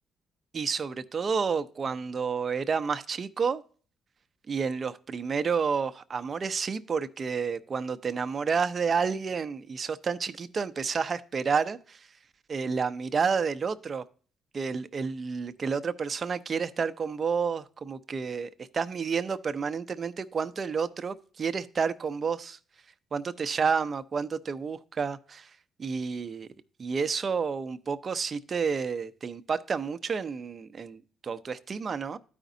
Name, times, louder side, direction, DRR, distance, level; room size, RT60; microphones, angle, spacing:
voice 1, 0.5-3.6 4.5-12.1 12.5-14.0 14.5-22.6 23.1-25.5 25.8-26.5 26.8-32.2, right 5 dB, 40° right, 0.6 m, -30 dB
13.0 x 5.0 x 2.6 m
cardioid pair, 90°, 0 cm